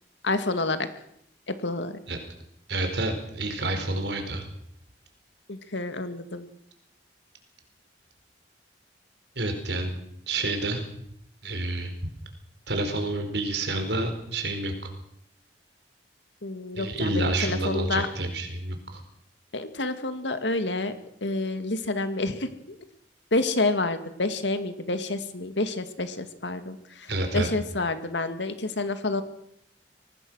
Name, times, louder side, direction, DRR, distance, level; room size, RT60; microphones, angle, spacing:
voice 1, 0.2-0.9 1.5-2.0 5.5-6.5 16.4-18.1 19.5-20.9 21.2-22.7 23.3-29.2, left 2 dB, 90° left, 9 dB, 2.2 m, -29 dB
voice 2, 2.7-4.4 9.4-9.9 10.3-10.8 11.4-11.9 12.7-14.9 16.8-19.0 27.1-27.5, right 2 dB, 70° right, 6 dB, 4.6 m, -28 dB
24.5 x 18.0 x 6.4 m, 0.75 s
head